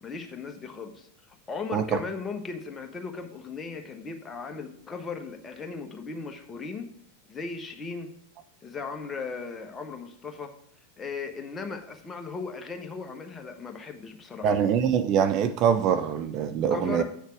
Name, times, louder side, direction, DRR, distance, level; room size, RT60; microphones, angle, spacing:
voice 1, 0.0-6.9 7.3-8.1 8.6-10.5 11.0-14.5 16.7-17.0, left 4 dB, 20° left, 5 dB, 1.2 m, -37 dB
voice 2, 14.4-17.0, right 8 dB, 35° right, 9 dB, 0.6 m, -24 dB
8.2 x 6.4 x 4.6 m, 0.69 s
figure-of-eight pair, 90°, 0 cm